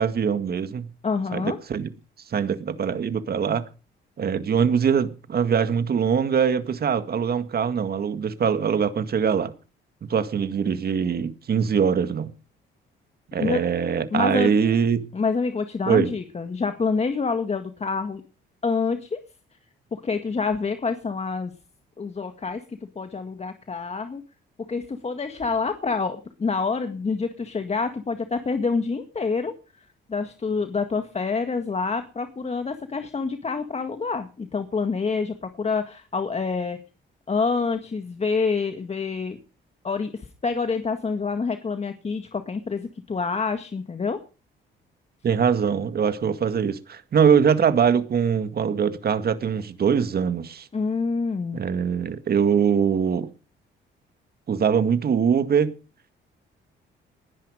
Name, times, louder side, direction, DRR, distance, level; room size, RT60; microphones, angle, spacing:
voice 1, 0.0-0.9 1.3-1.9 2.3-3.7 4.2-9.5 10.1-12.3 13.3-15.1 15.9-16.1 45.2-50.7 51.5-53.3 54.5-55.7, right 7 dB, 50° right, 1.9 m, -22 dB
voice 2, 1.0-1.6 13.4-13.6 14.1-14.5 15.1-18.2 18.6-19.2 19.9-21.5 22.0-24.2 24.7-29.5 30.1-36.8 37.3-39.4 39.8-44.2 50.7-51.6, left 4 dB, 30° left, 1.8 m, -27 dB
20.0 x 10.5 x 5.0 m
cardioid pair, 90°, 20 cm